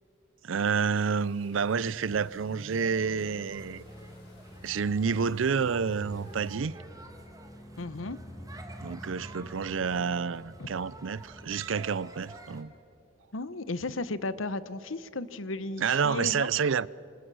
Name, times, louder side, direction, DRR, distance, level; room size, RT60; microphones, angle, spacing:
voice 1, 0.4-3.8 4.6-6.7 8.8-12.7 15.8-16.9, right 6 dB, 75° right, 0.5 m, -29 dB
sound 1, 0.9-6.6, left 3 dB, 60° left, 6.3 m, -61 dB
sound 2, 1.5-12.3, equal, 25° left, 1.1 m, -48 dB
sound 3, 2.7-12.6, right 2 dB, 20° right, 2.0 m, -51 dB
voice 2, 7.8-8.2 10.6-10.7 13.3-16.5, left 2 dB, 85° left, 1.0 m, -34 dB
27.5 x 26.0 x 6.3 m
head